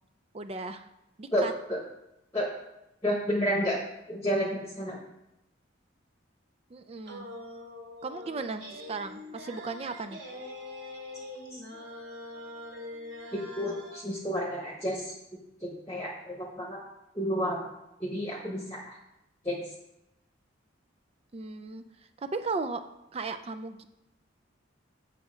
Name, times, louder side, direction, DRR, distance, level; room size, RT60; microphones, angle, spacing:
voice 1, 0.3-0.9 1.2-1.5 6.7-7.3 8.0-10.2 21.3-21.8 22.2-22.8 23.1-23.8, right 4 dB, 30° right, 8 dB, 0.4 m, -36 dB
voice 2, 3.0-3.8 4.1-5.0 11.5-11.6 13.3-15.1 15.6-16.8 17.1-17.6 18.0-18.9 19.4-19.6, equal, 15° left, -2 dB, 1.0 m, -30 dB
sound 1, 7.0-14.0, left 1 dB, 80° right, 2.6 m, -43 dB
7.6 x 5.8 x 5.0 m, 0.89 s
head